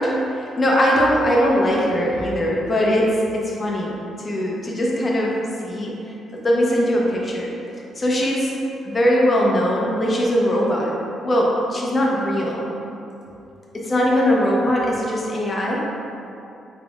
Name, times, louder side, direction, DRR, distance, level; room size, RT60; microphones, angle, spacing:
voice 1, 0.0-3.9 4.2-5.3 5.6-5.9 6.4-7.5 8.0-8.5 8.8-10.9 11.2-12.7 13.7-15.8, equal, 30° left, -3 dB, 0.6 m, -20 dB
3.6 x 3.5 x 2.3 m, 2.7 s
cardioid pair, 90°, 0 cm